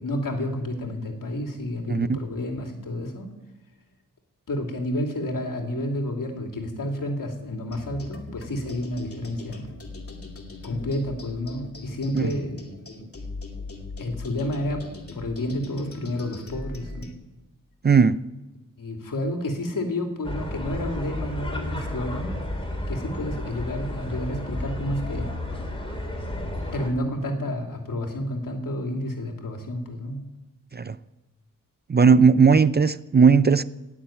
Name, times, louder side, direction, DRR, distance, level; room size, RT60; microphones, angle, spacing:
voice 1, 0.0-3.3 4.5-9.7 10.6-12.6 14.0-14.9 15.1-17.1 18.8-22.3 22.9-25.3 26.7-30.3 32.5-32.6, left 1 dB, 75° left, 2.8 m, -30 dB
sound 1, 7.7-17.1, left 2 dB, 40° left, 2.5 m, -40 dB
voice 2, 17.8-18.2 30.7-31.0 31.9-33.6, right 5 dB, 30° right, 0.5 m, -17 dB
sound 2, 20.2-26.9, left 1 dB, 15° left, 3.8 m, -32 dB
17.5 x 7.3 x 9.0 m
cardioid pair, 65°, 33 cm